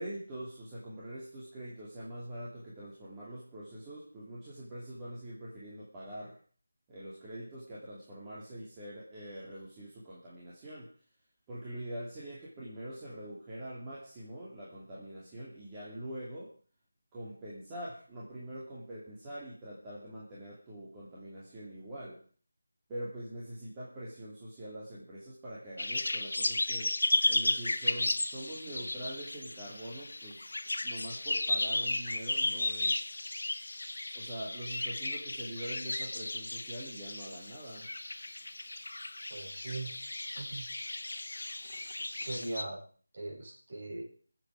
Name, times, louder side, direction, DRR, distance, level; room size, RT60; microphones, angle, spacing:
voice 1, 0.0-6.4 6.9-10.9 11.5-16.5 17.1-22.2 22.9-26.9 27.3-30.5 30.8-33.2 34.1-37.9, right 1 dB, 15° right, -7 dB, 2.7 m, -44 dB
sound 1, 25.8-42.6, left 2 dB, 70° left, 1.6 m, -34 dB
voice 2, 39.3-39.9 40.3-40.7 42.1-42.8 43.1-44.0, right 2 dB, 40° right, -4 dB, 7.9 m, -40 dB
21.0 x 8.0 x 4.9 m, 0.43 s
figure-of-eight pair, 165°, 0 cm